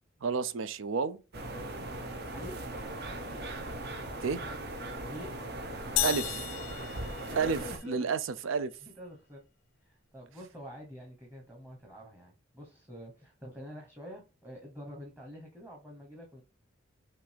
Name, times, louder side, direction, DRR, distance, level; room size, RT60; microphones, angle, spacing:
voice 1, 0.2-1.2 4.2-4.4 6.0-6.4 7.4-7.6 7.9-8.7, right 5 dB, 85° right, 0.5 m, -30 dB
sound 1, 1.3-7.8, right 1 dB, 55° right, 0.9 m, -39 dB
voice 2, 2.3-2.8 5.1-5.3 7.3-8.1 8.8-9.4 9.8-16.4, equal, 10° right, 1.0 m, -46 dB
sound 2, 6.0-7.9, left 14 dB, 90° left, 0.4 m, -34 dB
5.7 x 2.6 x 3.3 m
head